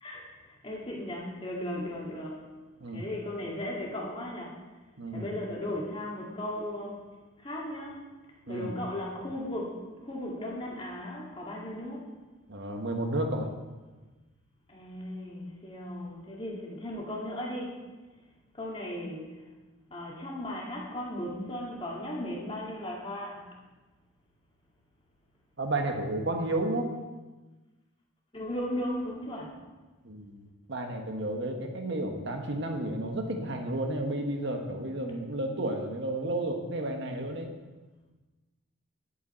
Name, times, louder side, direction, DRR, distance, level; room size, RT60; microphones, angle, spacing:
voice 1, 0.0-2.5 2.9-4.6 5.1-7.0 7.4-8.0 8.5-12.1 14.7-17.9 18.5-19.4 19.9-23.5 28.3-29.5, left 1 dB, 25° left, -3 dB, 2.0 m, -36 dB
voice 2, 5.0-5.3 8.5-8.8 12.5-13.5 25.6-26.9 30.0-30.4 30.7-37.5, right 1 dB, 60° right, 3 dB, 1.2 m, -32 dB
10.5 x 8.5 x 4.3 m, 1.2 s
head